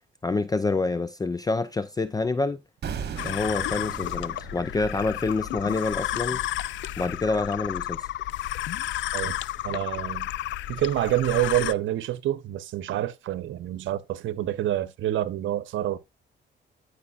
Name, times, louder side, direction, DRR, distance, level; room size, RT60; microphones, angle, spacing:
voice 1, 0.2-2.6 3.2-6.4 7.0-8.1, left 3 dB, 20° left, 0.5 m, -27 dB
sound 1, 2.8-7.8 8.1-8.3, right 7 dB, 55° right, 1.4 m, -40 dB
sound 2, 3.2-11.7, left 14 dB, 70° left, 0.4 m, -32 dB
voice 2, 9.6-10.3 10.7-16.0, right 13 dB, 75° right, 0.9 m, -27 dB
14.5 x 4.9 x 2.4 m
cardioid pair, 90°, 20 cm